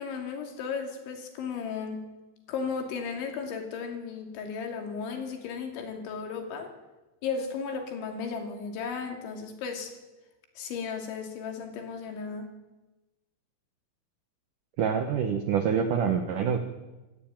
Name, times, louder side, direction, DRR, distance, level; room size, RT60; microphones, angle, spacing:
voice 1, 0.0-2.0 2.5-6.7 7.2-9.9 10.6-12.5, left 5 dB, 70° left, 4 dB, 4.7 m, -35 dB
voice 2, 14.8-16.6, right 7 dB, 75° right, 7 dB, 1.8 m, -26 dB
27.0 x 14.0 x 9.0 m, 1.1 s
omnidirectional pair, 5.7 m